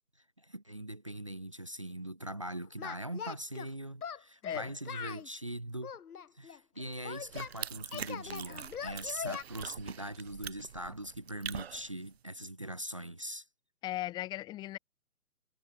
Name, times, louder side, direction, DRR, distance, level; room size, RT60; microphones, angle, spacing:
voice 1, 0.4-5.9 6.3-13.4, right 1 dB, 25° right, 0.5 m, -41 dB
Singing, 2.8-3.7 4.0-5.3 5.8-7.5 7.9-9.4, left 7 dB, 80° left, 0.8 m, -41 dB
voice 2, 4.4-4.8 13.8-14.8, left 15 dB, 10° left, 1.3 m, -38 dB
sound 1, 7.2-12.2, right 8 dB, 45° right, 2.6 m, -44 dB
figure-of-eight pair, 145°, 44 cm